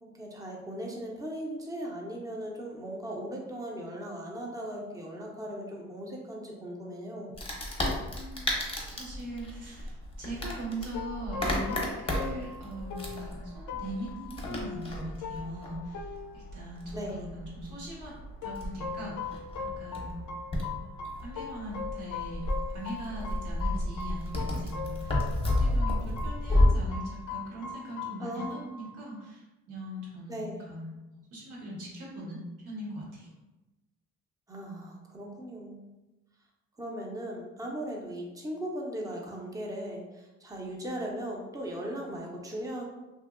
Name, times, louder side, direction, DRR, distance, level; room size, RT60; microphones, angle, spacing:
voice 1, 0.0-7.3 16.9-17.3 28.2-28.6 30.3-30.6 34.5-35.9 36.8-42.9, right 1 dB, 10° right, -1 dB, 0.6 m, -38 dB
Wood, 7.3-26.7, left 1 dB, 20° left, 0.7 m, -33 dB
voice 2, 8.0-8.6 8.9-16.1 16.3-20.4 21.2-22.4 22.7-33.3, right 1 dB, 90° right, -5 dB, 1.2 m, -41 dB
sound 1, 10.9-17.5 18.4-29.3, left 5 dB, 75° left, 0.4 m, -40 dB
2.7 x 2.7 x 2.5 m, 1.1 s
cardioid pair, 90°, 30 cm